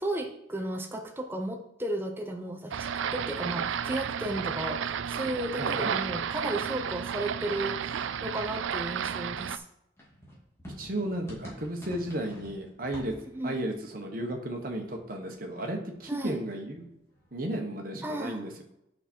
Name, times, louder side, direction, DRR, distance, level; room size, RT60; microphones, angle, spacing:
voice 1, 0.0-9.6 13.3-13.6 16.1-16.4 18.0-18.4, right 1 dB, 10° right, 1 dB, 0.7 m, -34 dB
sound 1, 2.7-9.6, right 8 dB, 90° right, 0.4 m, -32 dB
voice 2, 5.6-5.9 10.8-13.1 13.4-16.8 17.3-18.6, right 1 dB, 50° right, 2 dB, 1.3 m, -34 dB
sound 2, 10.0-15.5 15.8-17.3, equal, 15° left, 2.4 m, -49 dB
8.0 x 5.7 x 4.6 m, 0.83 s
head